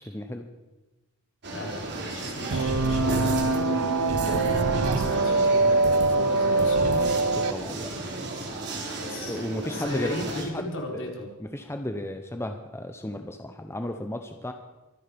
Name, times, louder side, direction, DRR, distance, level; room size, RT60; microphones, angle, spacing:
voice 1, 0.1-0.4 7.5-7.9 9.3-10.6 11.0-11.1 11.4-14.5, left 1 dB, 10° left, 6 dB, 0.9 m, -34 dB
sound 1, 1.4-10.4, right 2 dB, 50° right, 3.3 m, -34 dB
voice 2, 1.5-7.1 9.0-11.3, left 1 dB, 60° left, 1 dB, 3.9 m, -36 dB
sound 2, 2.5-7.5, right 3 dB, 75° right, 0.9 m, -23 dB
24.0 x 10.5 x 5.3 m, 1.1 s
head